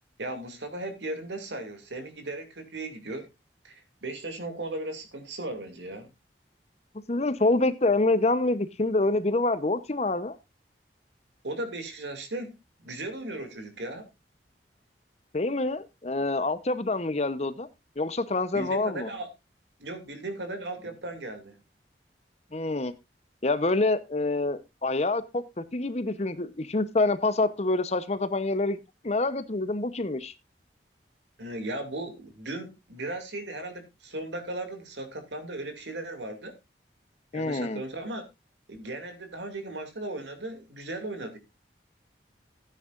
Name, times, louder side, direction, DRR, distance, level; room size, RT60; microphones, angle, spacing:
voice 1, 0.2-3.3 3.6-6.1 11.4-14.1 18.5-19.3 19.8-21.6 31.4-36.5 37.3-38.3 38.7-41.4, right 2 dB, 90° right, 2.5 m, -37 dB
voice 2, 7.1-10.4 15.3-17.7 18.0-19.1 22.5-22.9 23.4-30.3 37.3-37.8, left 2 dB, 40° left, 0.8 m, -26 dB
15.5 x 9.3 x 2.5 m
head